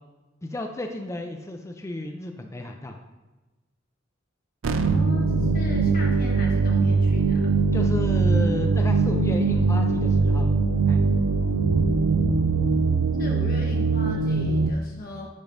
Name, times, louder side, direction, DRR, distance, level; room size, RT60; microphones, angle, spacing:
voice 1, 0.4-3.0 7.7-10.5 10.9-11.0, left 1 dB, 15° left, 4 dB, 0.4 m, -33 dB
sound 1, 4.6-14.7, right 4 dB, 80° right, 0.4 m, -21 dB
voice 2, 4.7-7.5 13.2-15.3, left 1 dB, 45° left, -1 dB, 1.1 m, -38 dB
10.5 x 5.1 x 2.6 m, 1.1 s
head